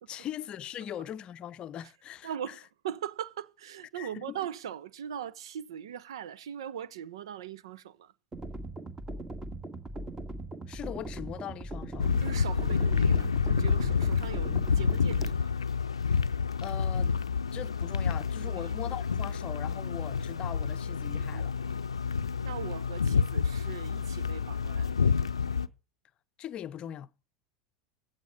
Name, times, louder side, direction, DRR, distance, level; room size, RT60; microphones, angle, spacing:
voice 1, 0.1-2.5 4.0-4.4 10.7-12.1 16.6-17.1 17.5-21.5 26.4-27.1, left 10 dB, 35° left, 0.7 m, -40 dB
voice 2, 2.2-8.1 12.2-15.5 18.4-18.7 21.2-21.8 22.4-25.1, right 9 dB, 65° right, 0.8 m, -40 dB
sound 1, 8.3-15.3, right 1 dB, 20° right, 1.7 m, -40 dB
sound 2, 12.0-25.7, left 6 dB, 80° left, 0.5 m, -29 dB
15.5 x 8.3 x 5.3 m
figure-of-eight pair, 80°, 3 cm